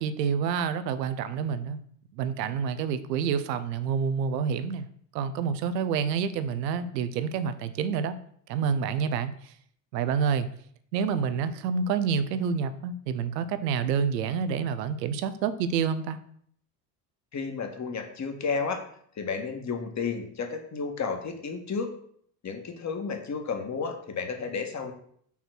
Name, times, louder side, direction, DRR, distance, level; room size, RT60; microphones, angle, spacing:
voice 1, 0.0-1.8 2.1-4.9 5.1-8.2 8.5-9.5 9.9-10.5 10.9-16.2, right 6 dB, 80° right, 12 dB, 0.8 m, -28 dB
voice 2, 17.3-18.8 19.2-21.9 22.4-24.9, left 5 dB, 35° left, 4 dB, 1.8 m, -32 dB
5.8 x 4.3 x 6.1 m, 0.63 s
hypercardioid pair, 65°, 48 cm